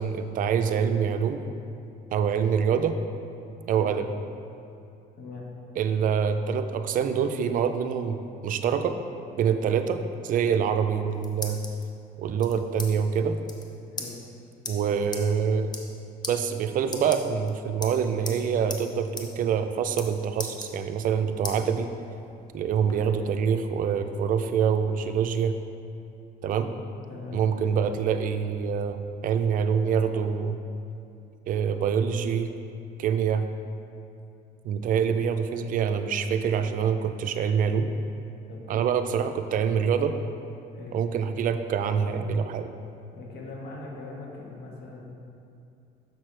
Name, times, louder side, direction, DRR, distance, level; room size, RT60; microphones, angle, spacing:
voice 1, 0.0-1.4 2.1-3.0 3.7-4.1 5.8-9.0 9.4-11.6 12.2-13.4 14.7-15.7 16.3-21.9 22.5-25.5 26.4-26.7 27.3-30.6 31.5-32.5 33.0-33.4 34.6-37.9 38.7-40.1 40.9-42.7, right 7 dB, 55° right, 8 dB, 0.4 m, -25 dB
sound 1, 10.8-11.8 12.4-12.9 13.2-13.3 13.4-13.6 14.0-14.1 14.6-14.7 15.1-15.2 15.6-16.0 16.2-16.3 16.8-17.5 17.8-18.4 18.7-18.8 19.2-19.3 19.6-20.1 20.4-21.1 21.4-21.6 22.1-22.9, left 3 dB, 25° left, 0.7 m, -37 dB
voice 2, 27.1-27.4 38.5-38.9 40.7-40.9 43.1-45.0, left 3 dB, 75° left, -3 dB, 1.4 m, -41 dB
6.6 x 6.0 x 3.3 m, 2.6 s
cardioid pair, 110°, 17 cm